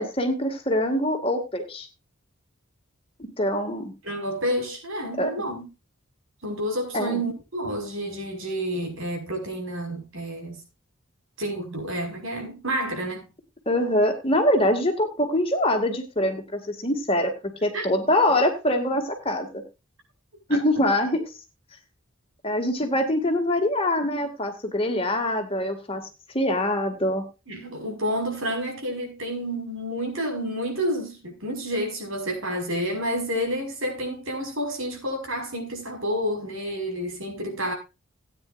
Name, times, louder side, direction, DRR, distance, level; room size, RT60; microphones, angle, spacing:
voice 1, 0.0-1.9 3.2-3.9 5.2-5.3 6.9-7.2 13.7-17.3 17.6-19.6 20.5-21.2 22.4-26.0 26.3-27.2, left 1 dB, 25° left, 2.2 m, -24 dB
voice 2, 4.0-5.7 6.4-10.6 11.4-13.3 17.7-17.9 20.5-20.6 27.5-37.7, equal, 80° right, 5.5 m, -29 dB
18.0 x 9.4 x 2.6 m
head